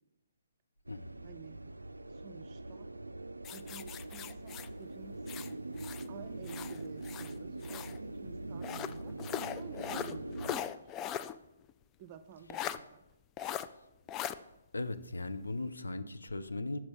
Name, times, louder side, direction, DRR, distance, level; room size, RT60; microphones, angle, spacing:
sound 1, 0.9-10.6, right 2 dB, 85° right, 0.4 m, -43 dB
voice 1, 1.2-1.6 2.1-2.9 3.5-5.2 6.1-9.1 9.5-10.9 12.0-13.0, right 8 dB, 35° right, 11 dB, 0.6 m, -52 dB
sound 2, 3.4-6.1 6.4-8.0 8.6-11.4 11.7-11.8 12.5-12.8 13.4-13.7 14.1-14.4, left 10 dB, 20° left, 0.3 m, -40 dB
voice 2, 14.7-16.8, left 2 dB, 80° left, 11 dB, 0.6 m, -38 dB
6.0 x 5.3 x 6.2 m, 0.90 s
figure-of-eight pair, 135°, 0 cm